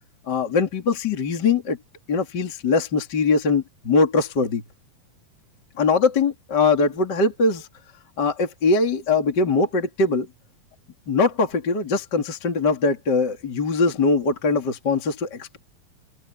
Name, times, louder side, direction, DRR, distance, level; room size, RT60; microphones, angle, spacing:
voice 1, 0.2-1.8 2.1-4.6 5.8-7.7 8.2-10.3 11.1-15.6, left 4 dB, 30° left, 2.8 m, -21 dB
omnidirectional pair, 4.1 m